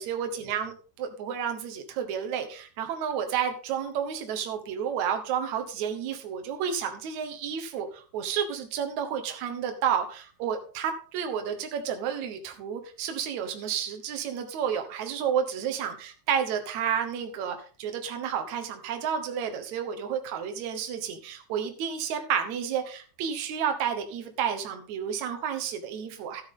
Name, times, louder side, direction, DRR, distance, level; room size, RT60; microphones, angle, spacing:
voice 1, 0.0-26.4, right 8 dB, 90° right, 6 dB, 1.6 m, -31 dB
13.0 x 8.8 x 3.7 m, 0.39 s
omnidirectional pair, 5.2 m